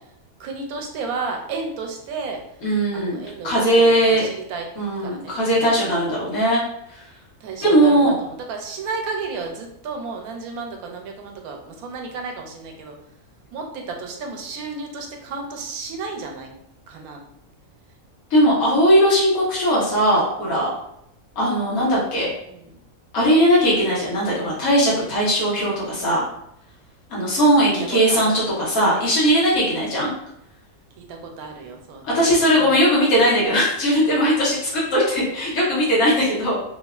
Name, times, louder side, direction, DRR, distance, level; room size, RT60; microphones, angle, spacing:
voice 1, 0.4-2.4 2.9-4.7 5.0-5.8 7.4-13.0 13.5-16.5 16.9-17.2 22.4-22.8 27.4-28.4 31.0-32.8, right 4 dB, 90° right, 2 dB, 1.0 m, -33 dB
voice 2, 2.6-4.2 4.8-6.6 7.6-8.1 18.3-20.7 21.4-22.3 23.1-26.3 27.1-30.1 32.1-36.6, equal, 85° left, -6 dB, 1.6 m, -19 dB
3.2 x 2.3 x 2.3 m, 0.77 s
omnidirectional pair, 1.5 m